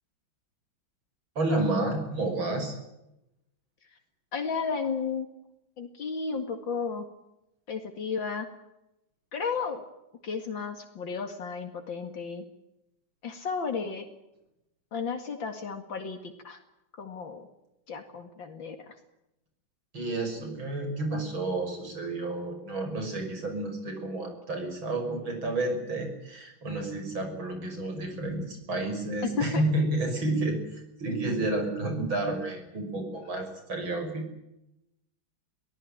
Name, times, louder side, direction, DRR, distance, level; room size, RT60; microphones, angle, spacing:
voice 1, 1.4-2.8 19.9-34.2, right 2 dB, 80° right, 5 dB, 6.9 m, -30 dB
voice 2, 4.3-5.3 5.8-7.1 7.7-8.5 9.3-9.8 10.2-12.4 13.2-14.1 14.9-16.6 16.9-17.5 17.9-19.0 29.4-29.6, left 5 dB, 70° left, 6 dB, 2.9 m, -33 dB
24.0 x 18.0 x 8.8 m, 0.87 s
omnidirectional pair, 2.2 m